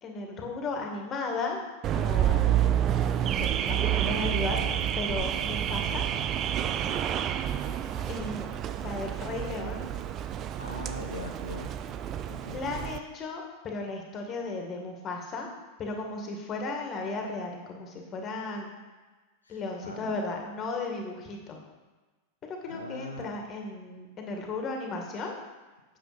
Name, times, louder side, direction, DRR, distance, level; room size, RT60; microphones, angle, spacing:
voice 1, 0.0-1.6 1.9-2.6 3.2-4.6 5.0-6.0 8.1-8.5 8.8-9.8 12.5-15.5 15.8-18.7 19.5-21.6 22.5-25.4, left 3 dB, 30° left, 2 dB, 2.2 m, -35 dB
Car / Alarm, 1.8-13.0, right 10 dB, 30° right, 0.6 m, -29 dB
voice 2, 7.5-8.1 10.6-11.9 12.3-12.6 19.4-20.1 22.7-23.5, left 2 dB, 80° left, 2 dB, 1.0 m, -42 dB
9.2 x 7.5 x 5.3 m, 1.3 s
figure-of-eight pair, 90°, 0 cm